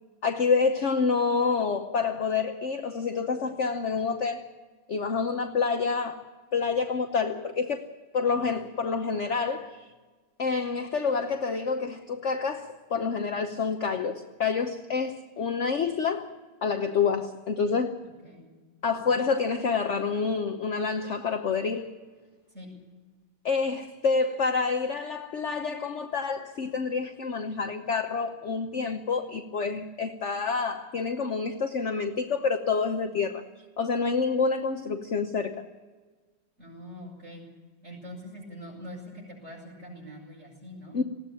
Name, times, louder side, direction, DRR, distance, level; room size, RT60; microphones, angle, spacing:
voice 1, 0.2-4.5 4.9-6.2 6.5-9.9 10.4-16.3 16.6-18.0 18.8-21.9 23.4-33.4 33.8-35.6 40.9-41.0, left 5 dB, 50° left, 1.0 m, -28 dB
voice 2, 36.6-37.4 37.8-41.0, equal, 35° right, 7.4 m, -43 dB
19.5 x 16.0 x 8.7 m
omnidirectional pair, 2.0 m